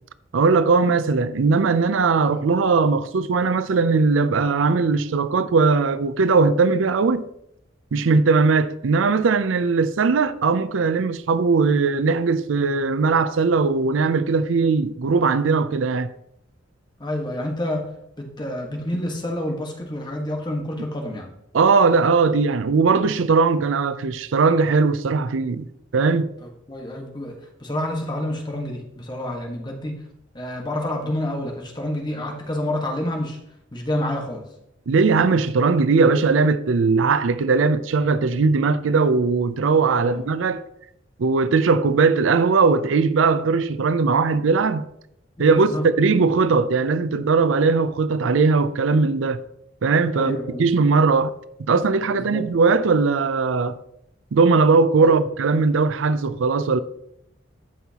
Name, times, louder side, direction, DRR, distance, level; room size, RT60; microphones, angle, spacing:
voice 1, 0.3-7.3 7.9-16.1 21.5-26.3 34.9-40.6 41.2-44.9 45.4-49.4 49.8-51.3 51.6-53.8 54.3-56.8, right 4 dB, 75° right, 0.5 m, -19 dB
voice 2, 17.0-17.8 18.2-21.3 26.4-29.9 30.3-33.4 33.7-34.4 40.0-40.2 45.4-46.2 50.1-50.7 52.1-52.4 55.0-55.1, left 1 dB, 25° left, 1.4 m, -28 dB
13.5 x 5.5 x 2.9 m
head